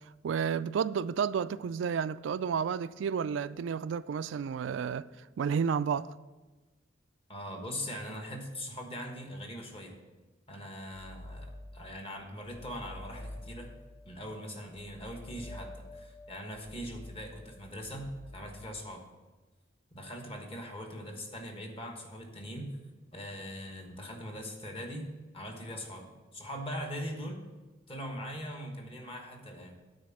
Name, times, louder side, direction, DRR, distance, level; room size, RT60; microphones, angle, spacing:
voice 1, 0.2-5.1 5.4-6.1, right 7 dB, 65° right, 0.3 m, -31 dB
voice 2, 7.3-10.0 10.5-13.7 14.0-19.0 19.9-22.7 23.1-25.1 25.3-27.4 27.9-29.8, equal, 30° left, 1.3 m, -41 dB
sound 1, 10.9-12.1 12.4-19.0, left 1 dB, 10° left, 0.3 m, -48 dB
9.4 x 4.3 x 7.3 m
head